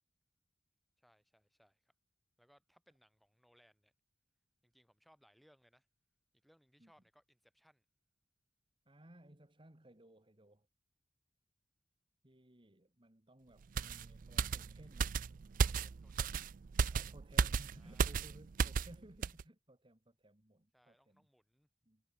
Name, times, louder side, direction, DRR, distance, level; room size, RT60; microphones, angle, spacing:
voice 1, 1.0-1.9 2.4-3.9 4.6-5.9 6.3-7.8 15.6-16.4 17.8-18.2 20.7-21.7, equal, ahead, 4.3 m, -69 dB
voice 2, 8.9-10.7 12.2-15.2 16.9-21.3 21.9-22.0, right 1 dB, 25° right, 2.2 m, -60 dB
sound 1, 13.8-18.9 19.2-19.4, right 5 dB, 45° right, 0.4 m, -34 dB
head